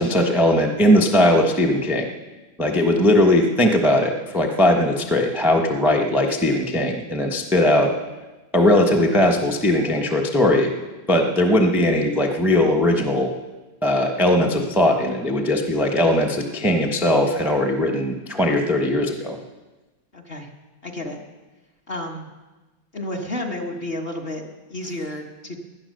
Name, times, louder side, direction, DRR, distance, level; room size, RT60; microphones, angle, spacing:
voice 1, 0.0-2.1 2.6-7.9 8.5-10.7 11.1-13.3 13.8-19.4, left 1 dB, ahead, 1 dB, 0.8 m, -19 dB
voice 2, 20.1-20.5 20.8-21.3 21.9-22.3 22.9-25.6, left 1 dB, 30° left, 1 dB, 1.4 m, -31 dB
17.5 x 11.5 x 6.6 m, 1.2 s
omnidirectional pair, 2.2 m